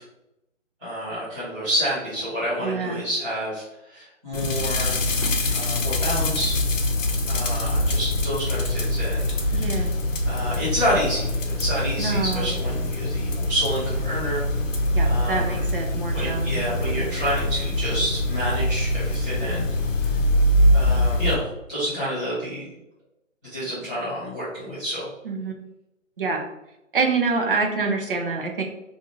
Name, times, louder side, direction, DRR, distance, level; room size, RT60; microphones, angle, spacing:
voice 1, 0.8-5.0 5.5-6.5 7.3-9.8 10.2-14.4 15.0-15.6 16.1-19.7 20.1-20.2 20.7-21.4 21.7-22.8 23.4-25.0, equal, 5° right, -16 dB, 0.8 m, -29 dB
voice 2, 2.6-3.0 9.5-9.9 12.0-12.5 14.9-17.2 25.2-25.6 26.2-26.4 26.9-28.6, right 4 dB, 45° right, 1 dB, 0.6 m, -26 dB
sound 1, 4.3-21.3, left 1 dB, 70° left, 0.7 m, -24 dB
2.5 x 2.5 x 3.0 m, 0.91 s
figure-of-eight pair, 160°, 39 cm